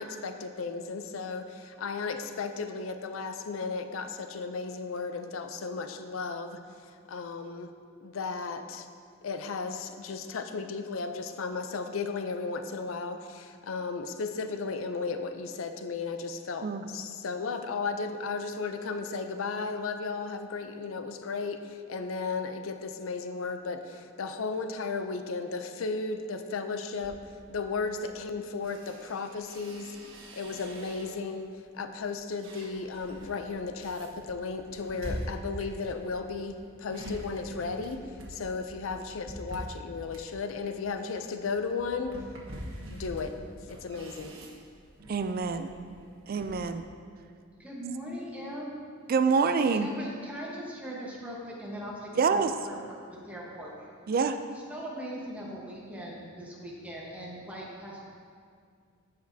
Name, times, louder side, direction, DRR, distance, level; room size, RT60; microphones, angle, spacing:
voice 1, 0.0-6.6 7.1-7.7 8.0-8.9 9.2-27.2 27.5-31.5 31.7-38.0 38.3-42.1 42.9-43.3 43.7-44.3, left 4 dB, 75° left, 7 dB, 0.5 m, -35 dB
sound 1, 26.9-31.4 31.9-46.6, equal, 75° right, 1.4 m, -45 dB
voice 2, 45.1-45.7 46.3-46.8 49.1-49.9 52.2-52.5 54.1-54.4, right 5 dB, 45° right, 9 dB, 0.4 m, -26 dB
voice 3, 47.6-48.8 49.7-53.9 54.7-58.0, right 1 dB, 5° right, -4 dB, 1.2 m, -40 dB
13.5 x 5.1 x 2.7 m, 2.1 s
head